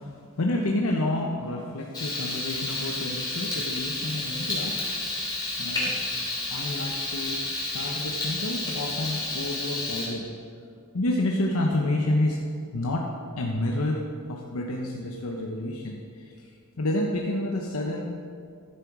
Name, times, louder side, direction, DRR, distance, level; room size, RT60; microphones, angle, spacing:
voice 1, 0.0-4.8 5.6-6.1 6.5-10.3 10.9-12.4 12.7-16.5 16.8-18.1, left 1 dB, 85° left, 0 dB, 0.8 m, -29 dB
Frying (food), 1.9-10.1, left 2 dB, 20° left, 2.8 m, -31 dB
12.0 x 7.1 x 4.7 m, 2.4 s
head